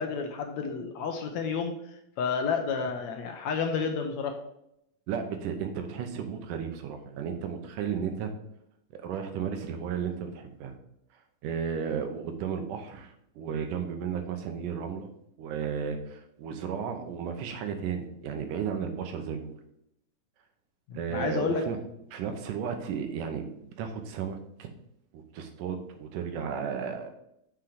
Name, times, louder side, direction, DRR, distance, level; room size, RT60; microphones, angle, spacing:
voice 1, 0.0-1.7 2.2-4.4 21.1-21.6, left 5 dB, 70° left, 4 dB, 1.8 m, -30 dB
voice 2, 5.1-8.3 8.9-10.7 11.4-15.1 15.4-19.6 20.9-21.8 22.1-24.7 25.1-27.1, right 7 dB, 85° right, 6 dB, 2.5 m, -34 dB
6.4 x 5.9 x 5.0 m, 0.78 s
omnidirectional pair, 3.7 m